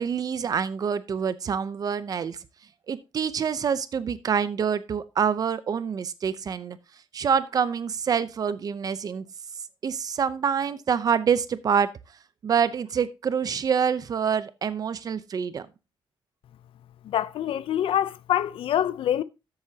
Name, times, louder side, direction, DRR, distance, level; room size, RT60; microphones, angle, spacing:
voice 1, 0.0-2.4 2.9-6.8 7.1-9.3 9.8-11.9 12.4-15.7, right 7 dB, 40° right, 0.7 m, -26 dB
voice 2, 17.0-19.2, left 11 dB, 75° left, 0.6 m, -25 dB
12.5 x 8.0 x 2.9 m
wide cardioid pair, 155°, 9 cm